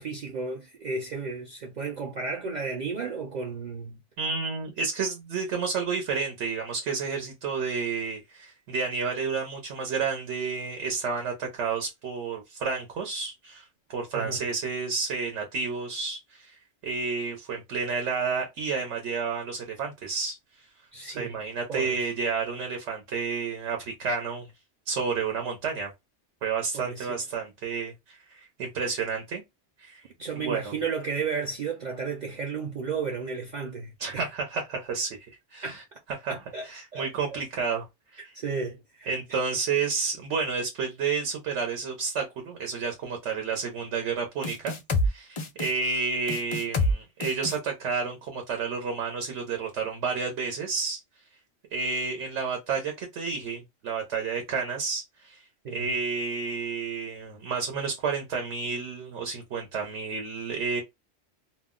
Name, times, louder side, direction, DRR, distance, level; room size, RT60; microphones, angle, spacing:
voice 1, 0.0-4.0 14.1-14.4 20.9-21.4 21.7-22.0 26.7-27.2 30.2-34.3 35.6-35.8 36.3-37.4 38.2-39.1 55.6-55.9, right 5 dB, 60° right, 0.5 m, -33 dB
voice 2, 4.2-13.6 13.9-16.6 16.8-20.4 21.1-24.5 24.9-25.9 26.4-29.4 29.8-30.0 30.4-30.7 34.0-35.2 35.5-35.8 36.1-36.3 36.6-37.9 38.1-38.2 39.1-44.8 45.0-51.0 51.7-55.4 55.7-60.8, right 5 dB, 85° right, 1.0 m, -30 dB
sound 1, 44.4-45.1 45.4-45.7 46.3-46.9 47.2-47.6, left 1 dB, 50° left, 0.3 m, -26 dB
2.4 x 2.0 x 3.5 m
omnidirectional pair, 1.2 m